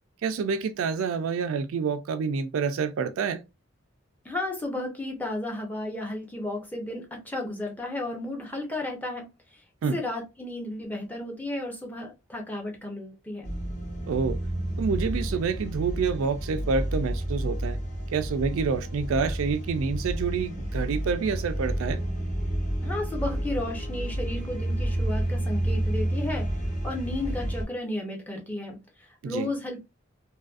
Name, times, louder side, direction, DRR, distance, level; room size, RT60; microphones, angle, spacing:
voice 1, 0.2-3.4 9.8-10.0 14.1-14.4 14.8-17.8 18.1-22.0 29.2-29.5, right 5 dB, 75° right, 0.3 m, -28 dB
voice 2, 4.2-9.6 9.9-13.5 22.8-26.6 26.8-29.8, left 1 dB, 10° left, 0.5 m, -33 dB
sound 1, 13.4-27.6, right 1 dB, 35° left, 0.9 m, -30 dB
2.6 x 2.4 x 2.4 m
head